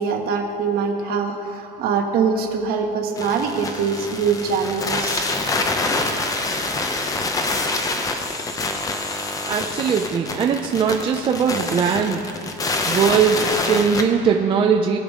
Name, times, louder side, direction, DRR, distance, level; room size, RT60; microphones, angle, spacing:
voice 1, 0.0-8.0, right 5 dB, 55° right, 4 dB, 1.2 m, -25 dB
sound 1, 3.2-14.0, left 3 dB, 20° left, 0.7 m, -25 dB
voice 2, 9.4-12.3 12.8-15.0, right 6 dB, 25° right, 3 dB, 0.5 m, -20 dB
20.5 x 7.0 x 3.7 m, 2.8 s
cardioid pair, 165°, 19 cm